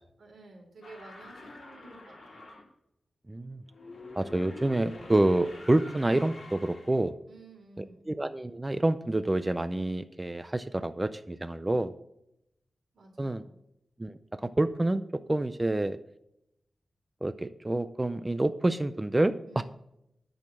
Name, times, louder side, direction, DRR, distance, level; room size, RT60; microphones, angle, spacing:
voice 1, 0.2-2.4 7.3-8.0 12.9-13.6 19.5-19.6, right 2 dB, 85° right, 0 dB, 3.8 m, -51 dB
sound 1, 0.8-2.7 3.7-7.0, left 2 dB, 45° left, 3.9 m, -47 dB
voice 2, 3.3-3.6 4.1-7.1 7.8-11.9 13.2-13.4 14.0-16.0 17.2-19.6, right 1 dB, 15° right, 11 dB, 0.5 m, -28 dB
10.5 x 6.4 x 6.1 m, 0.80 s
wide cardioid pair, 135°, 0 cm